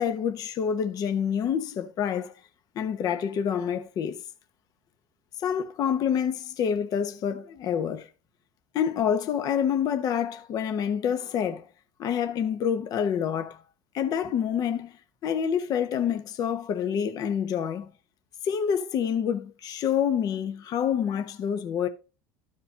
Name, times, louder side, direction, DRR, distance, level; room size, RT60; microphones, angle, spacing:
voice 1, 0.0-2.3 2.7-4.2 5.4-8.1 8.7-11.7 12.0-13.6 13.9-15.0 15.2-17.9 18.4-21.9, left 8 dB, 50° left, 1.1 m, -27 dB
13.5 x 5.0 x 2.7 m
supercardioid pair, 90°, 9 cm